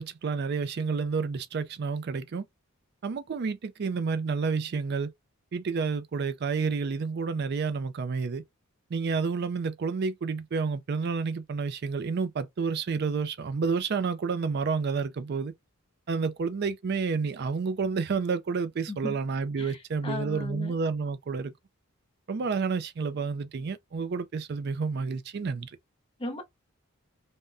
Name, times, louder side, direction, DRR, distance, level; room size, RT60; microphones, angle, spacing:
voice 1, 0.0-2.4 3.0-5.1 5.5-8.4 8.9-15.5 16.1-21.5 22.3-25.7, right 5 dB, 50° right, 0.4 m, -30 dB
voice 2, 20.0-20.7 26.2-26.4, left 2 dB, 25° left, 0.7 m, -36 dB
3.4 x 2.1 x 2.5 m
head